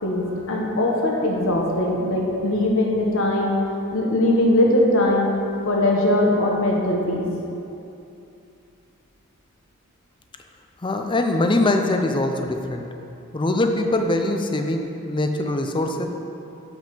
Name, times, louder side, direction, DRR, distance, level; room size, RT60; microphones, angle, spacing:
voice 1, 0.0-3.5 3.9-5.3 5.6-7.3, left 1 dB, 65° left, -1 dB, 1.3 m, -20 dB
voice 2, 10.8-12.8 13.3-16.1, left 2 dB, 25° left, 4 dB, 0.6 m, -22 dB
7.3 x 5.9 x 5.9 m, 2.7 s
head